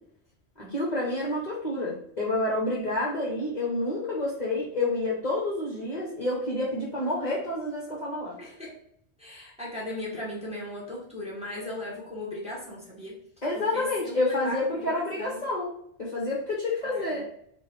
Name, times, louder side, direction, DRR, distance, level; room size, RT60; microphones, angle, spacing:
voice 1, 0.6-8.4 13.4-17.2, left 2 dB, 40° left, -5 dB, 0.9 m, -29 dB
voice 2, 8.4-8.8 9.2-13.2 13.5-15.4 16.8-17.2, left 1 dB, 5° right, -5 dB, 1.1 m, -37 dB
4.1 x 2.5 x 4.2 m, 0.69 s
omnidirectional pair, 1.2 m